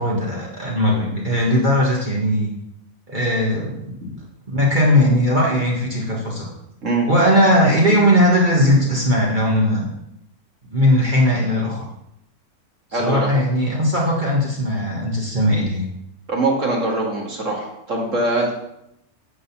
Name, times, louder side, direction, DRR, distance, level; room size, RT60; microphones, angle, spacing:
voice 1, 0.0-2.5 3.1-3.9 4.5-6.5 7.1-9.9 10.7-11.9 13.0-15.9, equal, 30° right, -4 dB, 1.8 m, -18 dB
voice 2, 12.9-13.3 16.3-18.5, right 2 dB, 55° right, -2 dB, 2.5 m, -22 dB
10.5 x 4.1 x 7.2 m, 0.82 s
omnidirectional pair, 1.6 m